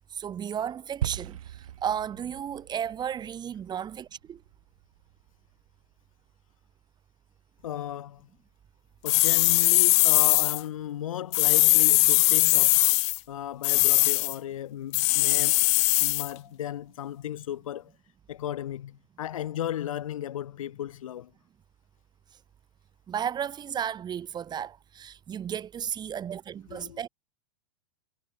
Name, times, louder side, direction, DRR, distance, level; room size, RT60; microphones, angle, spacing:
voice 1, 0.0-4.4 23.1-27.1, right 9 dB, 25° right, 5.9 m, -34 dB
sound 1, 1.0-5.4, right 11 dB, 80° right, 2.0 m, -39 dB
voice 2, 7.6-8.3 9.0-12.9 13.3-15.7 16.0-17.9 18.3-21.3 26.7-27.0, left 11 dB, 80° left, 5.1 m, -35 dB
sound 2, 9.1-10.6 11.3-13.2 13.6-14.3 14.9-16.3, left 25 dB, 40° left, 0.6 m, -21 dB
hypercardioid pair, 125°, 17 cm